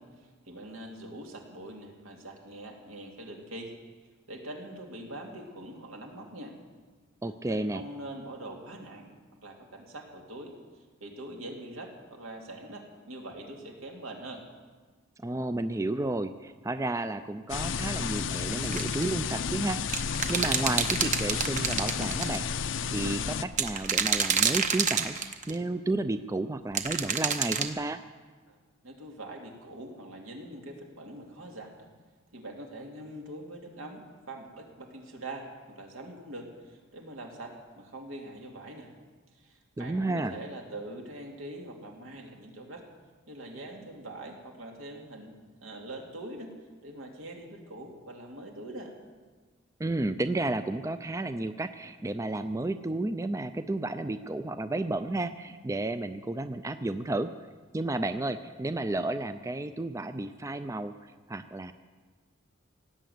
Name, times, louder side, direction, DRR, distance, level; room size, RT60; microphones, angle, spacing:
voice 1, 0.0-3.7 4.3-6.5 7.5-9.1 9.4-10.6 11.0-14.4 28.5-28.6 28.8-31.9 32.3-38.9 39.3-42.9 43.3-45.3 45.6-46.5 46.8-48.9, right 1 dB, 85° right, 1 dB, 2.5 m, -43 dB
voice 2, 7.2-7.8 15.2-19.8 20.3-28.0 39.8-40.3 49.8-57.3 57.7-60.9 61.3-61.7, right 2 dB, 15° right, 10 dB, 0.4 m, -32 dB
sound 1, 17.5-23.4, left 6 dB, 65° left, 0.6 m, -32 dB
sound 2, 18.6-19.1 19.9-22.4 23.5-25.5 26.7-27.7, right 7 dB, 35° right, 0.9 m, -27 dB
17.5 x 9.3 x 7.9 m, 1.4 s
head